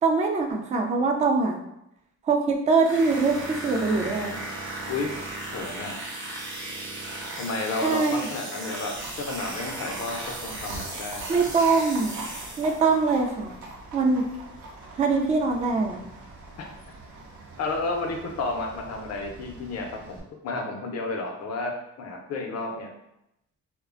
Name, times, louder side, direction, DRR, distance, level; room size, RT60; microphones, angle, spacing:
voice 1, 0.0-1.6 2.3-4.3 7.8-8.1 11.3-12.2 12.6-13.5 13.9-14.2 15.0-16.0, right 4 dB, 25° right, 3 dB, 0.3 m, -23 dB
sound 1, 2.8-13.0, right 2 dB, 40° right, 0.7 m, -36 dB
voice 2, 5.5-5.9 7.4-8.9 9.2-11.3 16.6-16.7 17.6-21.7 22.0-22.9, left 3 dB, 60° left, 2 dB, 0.6 m, -31 dB
Livestock farm animals working animals, 8.9-20.2, right 2 dB, 90° right, 0.6 m, -43 dB
2.4 x 2.2 x 2.4 m, 0.84 s
cardioid pair, 90°, 30 cm